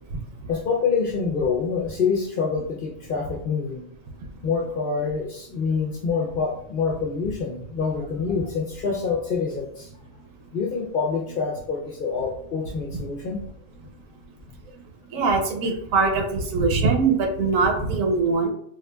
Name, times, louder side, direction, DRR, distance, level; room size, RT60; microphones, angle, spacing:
voice 1, 0.5-3.9 4.4-9.9 10.5-13.4, left 5 dB, 60° left, -1 dB, 0.6 m, -26 dB
voice 2, 15.1-18.5, right 4 dB, 80° right, 4 dB, 1.1 m, -22 dB
4.7 x 2.6 x 2.2 m, 0.68 s
omnidirectional pair, 1.4 m